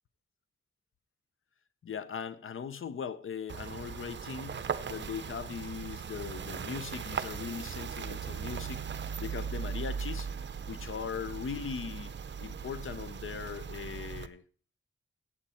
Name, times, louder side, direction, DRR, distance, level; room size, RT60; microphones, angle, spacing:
voice 1, 1.8-10.3 10.7-12.1 12.4-14.4, left 7 dB, 75° left, 0.8 m, -39 dB
sound 1, 3.5-14.3, right 6 dB, 60° right, 0.7 m, -38 dB
14.5 x 8.9 x 4.3 m
wide cardioid pair, 110°, 21 cm